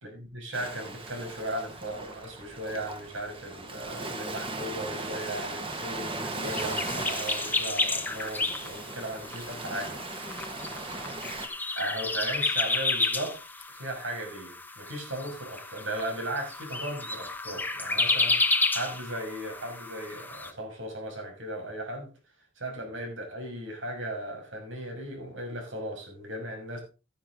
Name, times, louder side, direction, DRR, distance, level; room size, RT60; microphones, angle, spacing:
voice 1, 0.0-10.0 11.7-13.4 13.7-22.1 22.6-26.8, right 1 dB, 90° right, 1 dB, 6.3 m, -37 dB
Ocean, 0.5-11.5, right 2 dB, 30° right, 1.9 m, -38 dB
sound 1, 6.5-20.5, left 3 dB, 10° left, 1.0 m, -31 dB
13.5 x 10.5 x 3.9 m, 0.31 s
head